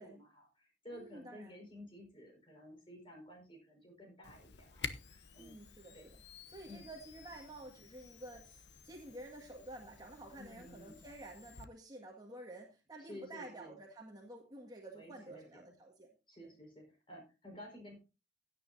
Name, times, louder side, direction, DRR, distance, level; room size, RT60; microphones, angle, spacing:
voice 1, 0.0-5.6 5.9-6.1 6.7-6.9 10.4-11.0 13.0-13.8 14.9-15.7 16.3-17.9, equal, 30° left, 2 dB, 5.2 m, -53 dB
voice 2, 0.9-1.6 5.4-6.2 6.5-16.1, right 1 dB, 20° right, 1 dB, 1.8 m, -51 dB
Camera, 4.2-11.7, left 6 dB, 80° left, 0.9 m, -51 dB
16.0 x 9.8 x 2.7 m, 0.30 s
head